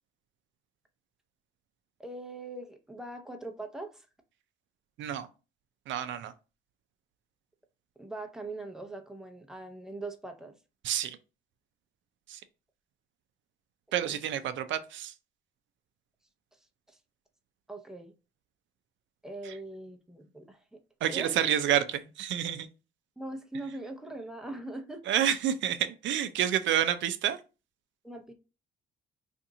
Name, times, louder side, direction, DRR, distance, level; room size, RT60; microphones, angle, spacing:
voice 1, 2.0-4.1 8.0-10.5 14.1-14.2 16.9-17.0 17.7-18.1 19.2-20.8 21.1-21.6 23.2-25.0 28.0-28.3, right 2 dB, 5° right, 0.6 m, -41 dB
voice 2, 5.9-6.3 10.8-11.2 12.3-12.4 13.9-15.1 21.0-22.7 25.1-27.4, right 10 dB, 70° right, 0.5 m, -29 dB
2.8 x 2.5 x 3.7 m
cardioid pair, 90°, 20 cm